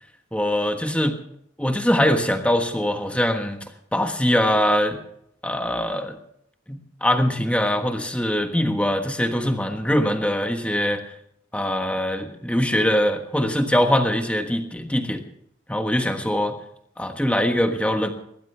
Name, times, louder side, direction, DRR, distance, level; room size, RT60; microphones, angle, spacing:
voice 1, 0.3-1.2 1.6-3.6 3.9-5.0 5.4-6.2 6.7-11.0 11.5-15.2 15.7-16.6 17.0-18.1, equal, 5° left, 5 dB, 1.4 m, -22 dB
21.0 x 15.5 x 3.4 m, 0.72 s
head